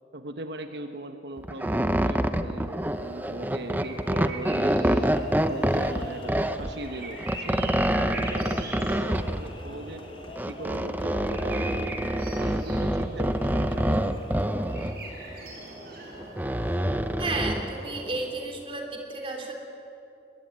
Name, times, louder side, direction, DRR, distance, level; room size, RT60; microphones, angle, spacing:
voice 1, 0.1-5.1 5.5-10.1 10.5-14.2, right 2 dB, 80° right, 7 dB, 1.1 m, -39 dB
sound 1, 1.4-6.7 7.2-9.6 10.3-14.9 16.2-17.7, right 1 dB, 10° right, 0.7 m, -26 dB
sound 2, 2.5-18.4, right 1 dB, 60° right, 6.3 m, -41 dB
sound 3, 4.8-15.9, left 3 dB, 30° left, 1.7 m, -49 dB
voice 2, 17.2-19.5, right 2 dB, 30° right, 2 dB, 3.4 m, -32 dB
21.5 x 21.5 x 9.4 m, 2.9 s
head